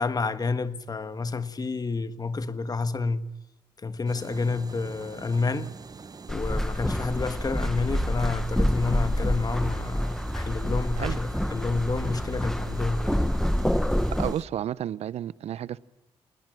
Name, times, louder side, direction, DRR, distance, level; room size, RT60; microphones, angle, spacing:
voice 1, 0.0-3.2 3.8-5.7 6.3-13.3, left 4 dB, 35° left, 1.6 m, -29 dB
sound 1, 4.1-14.5, right 4 dB, 35° right, 1.1 m, -45 dB
sound 2, 6.3-14.3, equal, 5° left, 1.3 m, -27 dB
voice 2, 14.1-15.8, right 10 dB, 80° right, 0.8 m, -31 dB
26.5 x 20.0 x 7.7 m
cardioid pair, 80°, 11 cm